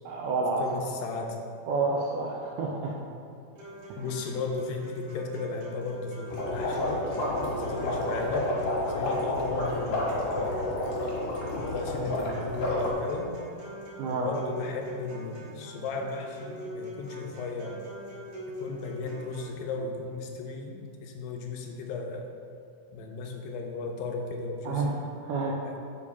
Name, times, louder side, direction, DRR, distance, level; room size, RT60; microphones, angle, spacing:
voice 1, 0.1-0.6 1.7-2.9 4.0-4.1 9.2-9.3 14.0-14.3 24.6-24.9 25.2-25.6, right 3 dB, 85° right, -3 dB, 1.9 m, -29 dB
voice 2, 0.6-1.4 4.0-8.5 8.9-10.7 11.4-13.3 14.1-17.8 18.6-22.3 22.9-25.0 25.7-25.8, left 3 dB, 80° left, 2 dB, 2.3 m, -35 dB
sound 1, 3.6-19.6, left 1 dB, 60° right, 2.1 m, -42 dB
sound 2, 6.3-12.9, left 1 dB, 60° left, 2.8 m, -30 dB
7.2 x 4.6 x 4.1 m, 2.4 s
omnidirectional pair, 4.2 m